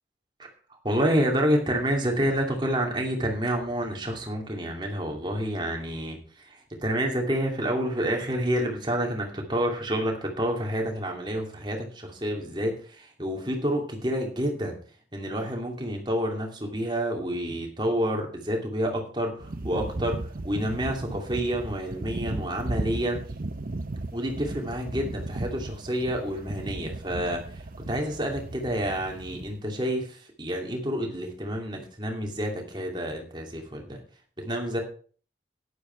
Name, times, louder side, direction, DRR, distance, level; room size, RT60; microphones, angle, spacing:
voice 1, 0.8-14.8 15.1-23.2 24.1-34.0 34.4-34.8, equal, 25° right, 2 dB, 2.8 m, -29 dB
sound 1, 19.4-29.6, right 2 dB, 50° right, 0.7 m, -36 dB
12.0 x 10.5 x 4.6 m, 0.41 s
head